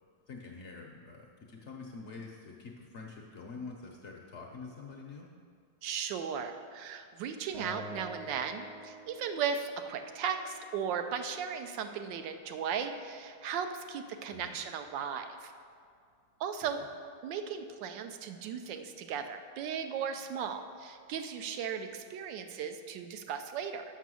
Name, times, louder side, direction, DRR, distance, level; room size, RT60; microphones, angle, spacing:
voice 1, 0.3-5.3 14.3-14.6 16.6-16.7, left 4 dB, 60° left, 0 dB, 0.7 m, -46 dB
voice 2, 5.8-15.5 16.4-16.8 17.2-23.8, right 7 dB, 80° right, 7 dB, 1.3 m, -36 dB
Acoustic guitar, 7.5-10.8, right 1 dB, 55° right, 0.9 m, -47 dB
6.8 x 6.0 x 6.2 m, 2.2 s
omnidirectional pair, 2.0 m